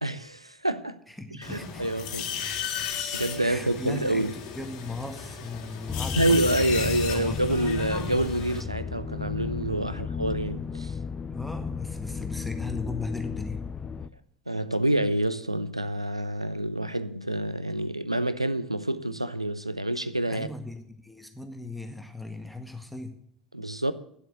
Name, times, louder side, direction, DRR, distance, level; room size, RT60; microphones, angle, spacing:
voice 1, 0.0-1.0 1.4-2.3 2.6-4.3 6.2-11.0 14.5-20.5 23.5-23.9, right 1 dB, 90° right, 0.5 m, -27 dB
voice 2, 1.1-1.9 3.4-6.4 7.1-7.7 9.9-10.1 11.3-13.6 20.3-23.1, left 2 dB, ahead, 1.7 m, -38 dB
sound 1, 1.4-8.6, left 7 dB, 55° left, 2.0 m, -35 dB
sound 2, 5.9-14.1, left 5 dB, 25° left, 0.6 m, -34 dB
9.7 x 8.0 x 9.2 m
figure-of-eight pair, 65°, 3 cm